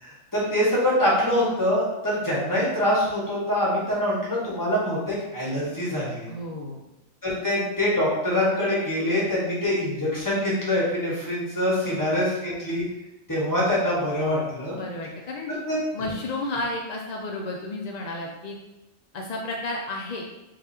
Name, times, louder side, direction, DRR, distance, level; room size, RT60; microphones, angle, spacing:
voice 1, 0.0-6.3 7.2-12.8 13.3-14.8 15.5-15.8, left 1 dB, 15° left, -7 dB, 1.6 m, -24 dB
voice 2, 6.3-6.8 11.8-12.0 14.7-15.5 15.9-18.6 19.1-20.2, left 2 dB, 65° left, -1 dB, 0.4 m, -32 dB
3.8 x 3.1 x 4.3 m, 1.0 s
omnidirectional pair, 1.3 m